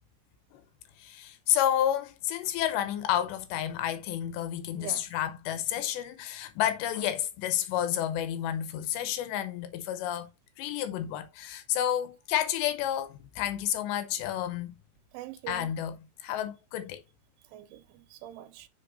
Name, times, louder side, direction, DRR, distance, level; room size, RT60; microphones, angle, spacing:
voice 1, 1.0-10.3 10.6-14.7 15.5-17.0, left 11 dB, 80° left, 2.7 m, -30 dB
voice 2, 15.1-15.7 17.5-18.7, right 12 dB, 85° right, 3.2 m, -43 dB
8.3 x 5.3 x 2.5 m
omnidirectional pair, 5.6 m